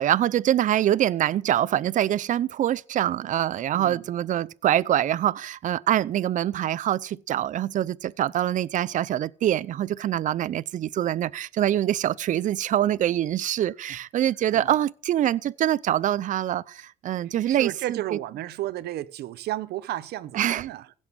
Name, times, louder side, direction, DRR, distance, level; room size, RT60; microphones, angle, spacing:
voice 1, 0.0-18.0 20.3-20.7, right 11 dB, 50° right, 0.5 m, -24 dB
voice 2, 17.5-20.9, right 14 dB, 70° right, 0.9 m, -33 dB
16.0 x 6.4 x 7.3 m
cardioid pair, 110°, 17 cm